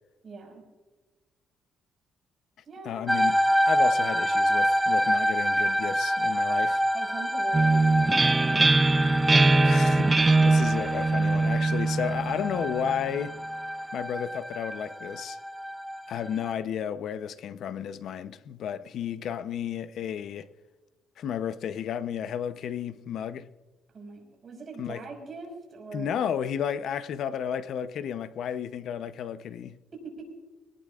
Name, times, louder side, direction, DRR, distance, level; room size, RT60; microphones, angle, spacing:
voice 1, 0.2-0.6 2.7-3.4 6.9-8.6 23.9-26.2 29.9-30.2, right 4 dB, 35° right, 5.4 m, -42 dB
voice 2, 2.8-3.4 3.7-6.8 9.6-13.4 13.9-15.4 16.1-20.5 21.2-23.5 24.8-25.0 25.9-29.8, left 8 dB, 65° left, 0.7 m, -32 dB
sound 1, 3.1-16.5, equal, ahead, 1.0 m, -27 dB
sound 2, 7.5-13.1, right 3 dB, 20° right, 0.5 m, -22 dB
22.0 x 18.5 x 2.4 m
cardioid pair, 145°, 0 cm